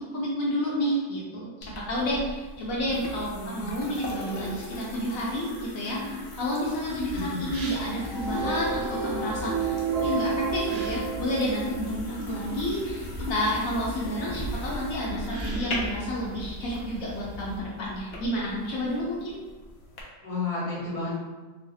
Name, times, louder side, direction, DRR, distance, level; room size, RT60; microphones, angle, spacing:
voice 1, 0.0-13.0 13.3-19.3, equal, 70° left, -5 dB, 0.9 m, -30 dB
sound 1, 1.6-20.0, left 1 dB, 90° left, 0.5 m, -38 dB
voice 2, 3.3-3.8 7.1-7.4 20.2-21.1, left 3 dB, 15° right, -10 dB, 0.6 m, -32 dB
sound 2, 6.9-17.6, left 1 dB, 85° right, 1.1 m, -41 dB
sound 3, 8.0-12.2, right 5 dB, 60° right, 1.2 m, -31 dB
3.1 x 2.0 x 2.6 m, 1.3 s
omnidirectional pair, 1.6 m